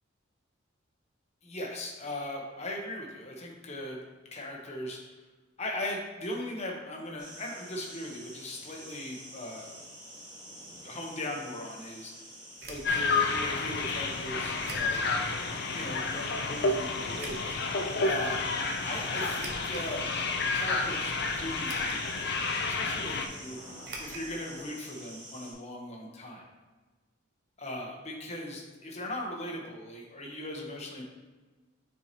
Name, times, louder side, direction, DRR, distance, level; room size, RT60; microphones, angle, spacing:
voice 1, 1.4-4.0 4.3-5.0 5.6-9.7 10.8-12.1 12.7-15.1 15.7-17.5 18.0-18.4 18.8-20.0 20.5-26.4 27.6-31.0, left 1 dB, 30° left, -1 dB, 0.9 m, -39 dB
sound 1, 7.2-25.5, equal, 20° right, 1.6 m, -48 dB
sound 2, 12.6-13.0 14.6-15.1 15.7-15.8 17.2-17.6 19.3-19.9 20.5-20.6 21.7-22.1 22.4-22.5 23.8-24.3 24.6-24.7 24.9-25.0, right 2 dB, 50° right, 0.9 m, -43 dB
sound 3, 12.8-23.3, left 3 dB, 55° left, 0.5 m, -30 dB
7.0 x 4.6 x 2.9 m, 1.3 s
head